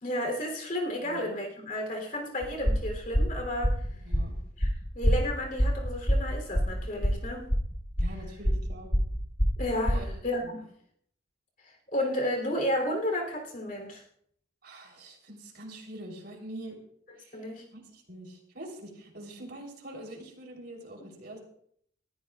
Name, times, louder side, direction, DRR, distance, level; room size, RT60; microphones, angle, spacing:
voice 1, 0.0-3.8 4.6-7.5 9.6-10.7 11.6-14.0 17.3-17.6, left 1 dB, 45° left, 2 dB, 3.2 m, -32 dB
voice 2, 1.0-1.4 4.0-4.4 8.0-8.9 9.9-10.1 10.4-10.6 14.6-16.8 17.2-17.4 17.7-21.4, right 1 dB, 60° right, 1 dB, 3.6 m, -44 dB
sound 1, 2.4-10.1, equal, 25° left, 1.7 m, -26 dB
20.0 x 14.5 x 2.4 m, 0.65 s
head